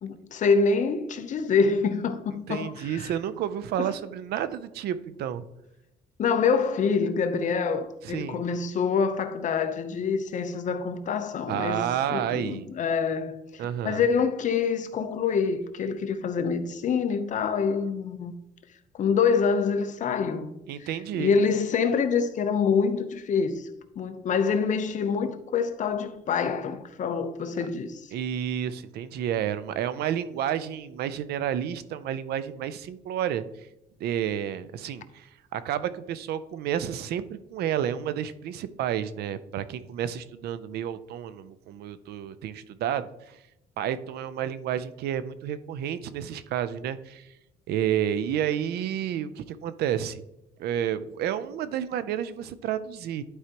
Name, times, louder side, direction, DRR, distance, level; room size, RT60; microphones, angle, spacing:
voice 1, 0.0-3.1 3.8-3.9 6.2-11.8 12.1-18.3 18.9-20.9 21.2-23.7 24.0-28.1, left 5 dB, 45° left, 0.8 m, -26 dB
voice 2, 2.5-5.4 8.0-8.4 11.5-12.7 13.6-14.0 20.7-21.4 28.1-33.4 34.0-43.4 43.8-47.3 47.7-50.2 50.6-53.2, right 10 dB, 70° right, 0.6 m, -30 dB
11.5 x 4.7 x 3.0 m
cardioid pair, 110°, 17 cm